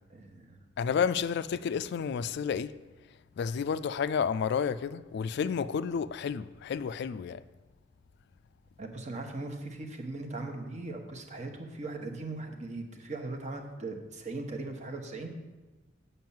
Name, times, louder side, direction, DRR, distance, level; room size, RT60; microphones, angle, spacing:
voice 1, 0.1-0.6 8.8-15.3, right 2 dB, 40° right, 1.2 m, -39 dB
voice 2, 0.8-2.7 3.4-7.4, left 6 dB, 60° left, 0.3 m, -31 dB
7.6 x 5.6 x 7.2 m
head